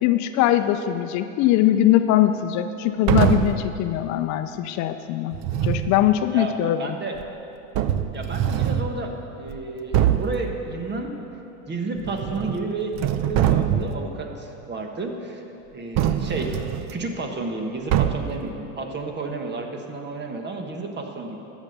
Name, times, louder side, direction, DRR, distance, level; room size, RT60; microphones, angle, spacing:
voice 1, 0.0-5.3 5.6-6.8, left 12 dB, 50° left, 9 dB, 0.6 m, -21 dB
sound 1, 3.1-3.7 5.3-6.0 7.2-7.3 7.7-9.0 9.5-9.6 9.9-10.4 12.0-12.6 12.9-14.0 16.0-16.9 17.9-18.4, right 10 dB, 45° right, 0.6 m, -23 dB
voice 2, 6.3-7.1 8.1-11.1 11.7-13.0 13.3-15.4 15.7-16.6 16.9-21.4, right 3 dB, 30° right, 3 dB, 1.5 m, -31 dB
12.0 x 7.3 x 6.7 m, 2.9 s
hypercardioid pair, 95°, 38 cm